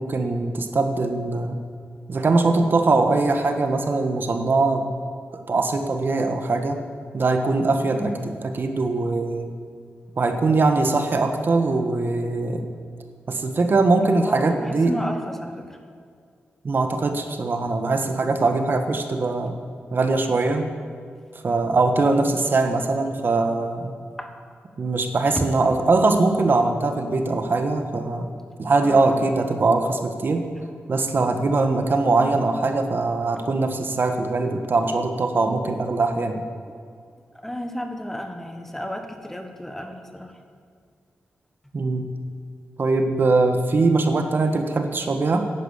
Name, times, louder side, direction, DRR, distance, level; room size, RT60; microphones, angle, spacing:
voice 1, 0.0-1.6 2.1-4.9 5.5-6.8 7.1-8.1 8.6-9.5 10.2-12.7 13.3-14.9 16.6-19.6 19.9-20.6 21.4-23.9 24.8-28.3 28.6-30.5 30.9-36.4 41.7-42.2 42.8-45.5, right 3 dB, 50° right, 6 dB, 1.3 m, -21 dB
voice 2, 14.0-15.8 24.2-24.3 28.8-29.4 37.3-40.3, equal, 5° left, 5 dB, 1.3 m, -33 dB
11.0 x 11.0 x 8.2 m, 2.2 s
wide cardioid pair, 95°, 4 cm